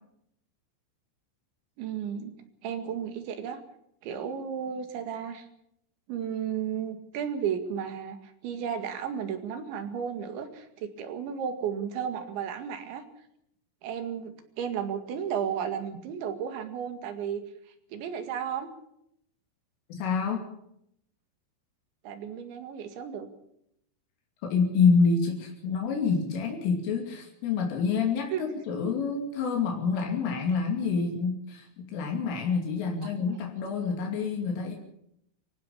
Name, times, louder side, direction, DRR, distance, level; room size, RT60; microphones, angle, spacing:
voice 1, 1.8-2.4 2.6-3.6 4.0-5.5 6.1-13.0 13.8-17.4 17.9-18.7 22.0-23.3 28.3-28.4 33.0-33.3, right 8 dB, 70° right, 7 dB, 4.3 m, -33 dB
voice 2, 19.9-20.4 24.4-34.7, left 5 dB, 80° left, 2 dB, 5.2 m, -27 dB
25.0 x 16.0 x 7.0 m, 0.74 s
omnidirectional pair, 5.7 m